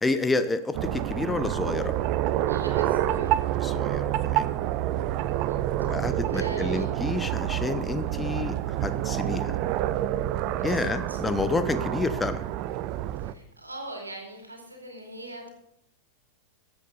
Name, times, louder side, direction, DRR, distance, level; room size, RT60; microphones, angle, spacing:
voice 1, 0.0-2.0 3.6-4.5 5.9-9.6 10.6-12.4, left 3 dB, 10° left, 11 dB, 0.7 m, -29 dB
sound 1, 0.7-13.3, right 13 dB, 40° right, 0.5 m, -28 dB
voice 2, 2.5-3.4 5.4-6.9 10.6-11.2 13.2-15.5, right 1 dB, 80° right, 2 dB, 2.7 m, -42 dB
13.0 x 8.1 x 5.4 m, 0.78 s
figure-of-eight pair, 90°, 0 cm